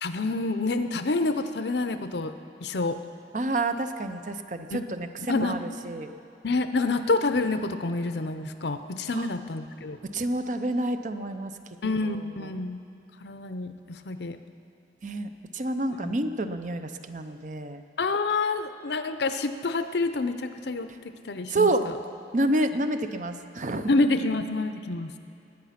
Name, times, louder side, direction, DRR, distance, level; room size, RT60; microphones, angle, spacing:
voice 1, 0.0-2.3 2.6-3.0 4.7-4.8 5.3-5.6 6.4-10.0 11.8-12.8 13.2-14.4 16.0-16.2 18.0-20.9 21.2-21.7 23.9-25.1, left 3 dB, 75° left, 9 dB, 0.7 m, -27 dB
voice 2, 3.3-6.1 9.1-9.3 10.1-11.5 12.0-12.5 15.0-17.8 21.5-21.9 22.3-23.9, right 2 dB, 45° right, 9 dB, 0.6 m, -29 dB
20.5 x 9.2 x 5.8 m, 2.7 s
head